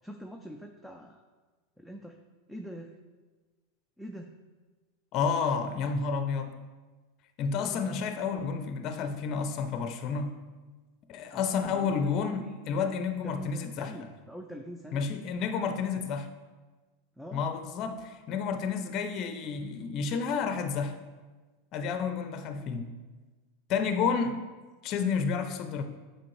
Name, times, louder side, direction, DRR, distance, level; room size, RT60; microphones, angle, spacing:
voice 1, 0.0-1.2 1.8-2.2 2.5-3.0 4.0-4.3 7.6-7.9 11.3-12.5 13.2-15.1 17.2-17.5, equal, ahead, 3 dB, 0.5 m, -44 dB
voice 2, 5.1-6.6 7.4-10.3 11.1-13.9 14.9-16.3 17.3-21.0 21.7-22.9 23.7-24.4 24.8-25.8, left 5 dB, 45° left, 7 dB, 0.6 m, -30 dB
7.5 x 4.4 x 3.2 m, 1.3 s
hypercardioid pair, 90°, 0 cm